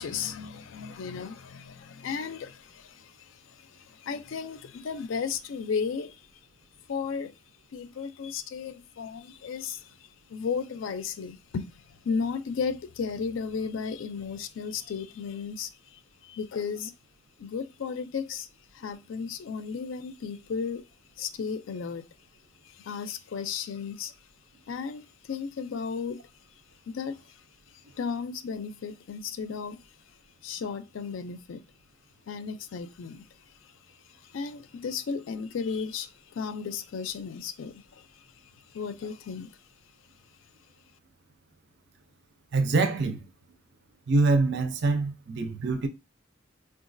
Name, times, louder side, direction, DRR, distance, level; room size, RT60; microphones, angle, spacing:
voice 1, 0.0-6.2 6.9-7.3 7.7-16.9 17.4-18.5 18.7-20.8 21.2-22.1 22.6-24.1 24.7-26.2 26.9-27.4 28.0-29.8 30.4-31.6 32.3-33.3 33.6-33.7 34.2-38.2 38.7-39.5, left 6 dB, 75° left, 0.4 m, -34 dB
voice 2, 42.5-43.2 44.1-45.9, right 3 dB, 60° right, 0.5 m, -25 dB
3.8 x 2.3 x 2.5 m
head